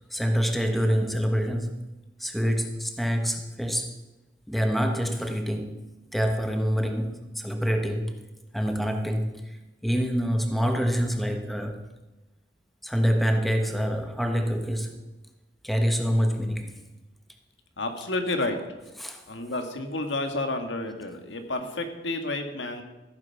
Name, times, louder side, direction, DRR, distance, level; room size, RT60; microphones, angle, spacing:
voice 1, 0.1-1.9 2.2-3.9 4.5-5.8 6.1-8.1 8.5-9.6 9.8-11.8 12.8-15.0 15.6-16.8 19.0-19.2, equal, ahead, 4 dB, 1.2 m, -26 dB
voice 2, 17.8-18.6 19.3-22.8, left 2 dB, 80° left, 6 dB, 1.7 m, -30 dB
15.0 x 8.9 x 5.9 m, 1.1 s
head